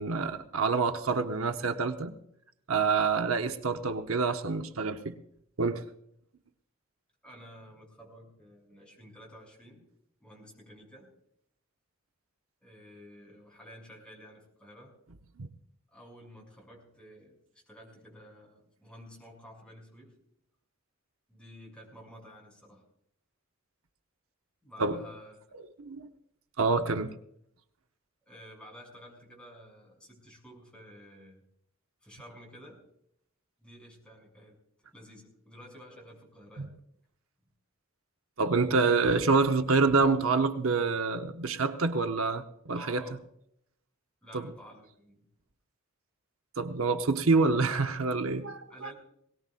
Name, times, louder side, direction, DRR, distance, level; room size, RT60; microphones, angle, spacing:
voice 1, 0.0-2.1 2.7-5.2 5.6-5.8 15.4-15.5 24.8-25.0 25.8-26.1 26.6-27.1 36.6-36.7 38.4-43.0 44.3-44.5 46.6-48.9, right 4 dB, 85° right, 0.9 m, -27 dB
voice 2, 7.2-9.8 10.2-11.1 12.6-14.9 15.9-20.2 21.3-22.8 24.6-25.3 28.3-31.4 32.0-32.9 33.6-34.6 34.9-36.7 42.7-43.2 44.2-45.3 48.7-48.9, equal, 5° left, 6.4 m, -51 dB
21.5 x 18.0 x 2.5 m
head